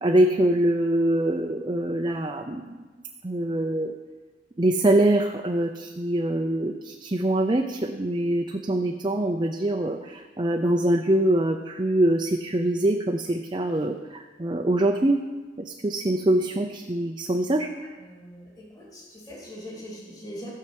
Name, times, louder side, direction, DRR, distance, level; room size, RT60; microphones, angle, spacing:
voice 1, 0.0-2.8 3.2-4.0 4.6-15.2 15.6-17.7, right 1 dB, 25° right, 3 dB, 0.6 m, -24 dB
voice 2, 18.0-20.5, equal, 20° left, -5 dB, 2.6 m, -41 dB
16.0 x 5.7 x 7.6 m, 1.3 s
head